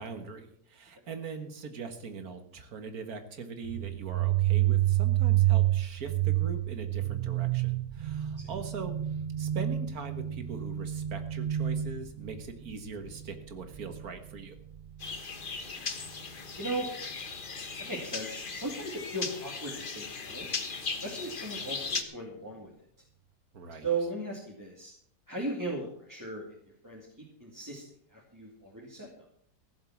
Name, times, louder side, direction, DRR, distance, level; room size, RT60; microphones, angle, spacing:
voice 1, 0.0-8.9 9.4-14.6 23.5-23.9, right 5 dB, 60° right, 8 dB, 2.0 m, -41 dB
sound 1, 3.6-15.2, right 13 dB, 40° right, 0.8 m, -29 dB
sound 2, 15.0-22.0, left 4 dB, 35° left, 1.2 m, -38 dB
voice 2, 17.8-20.5 21.0-22.7 23.8-24.9 25.3-26.4 26.8-27.8 28.1-29.1, right 2 dB, 10° right, -2 dB, 2.2 m, -37 dB
15.0 x 7.5 x 7.3 m, 0.68 s
omnidirectional pair, 1.7 m